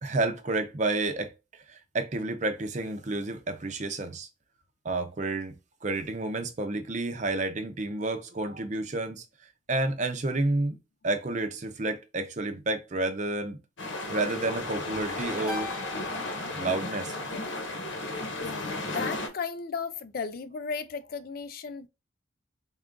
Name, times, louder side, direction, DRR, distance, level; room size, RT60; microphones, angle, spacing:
voice 1, 0.0-4.3 4.8-5.5 5.8-9.2 9.7-10.8 11.0-13.6 14.1-15.7 16.6-17.2, right 2 dB, 35° right, 0.6 m, -30 dB
sound 1, 13.8-19.3, left 2 dB, 70° left, 1.0 m, -34 dB
Keyboard (musical), 15.5-18.0, left 3 dB, 15° left, 1.2 m, -43 dB
voice 2, 18.4-21.9, left 5 dB, 50° left, 0.3 m, -35 dB
3.5 x 2.4 x 3.6 m
head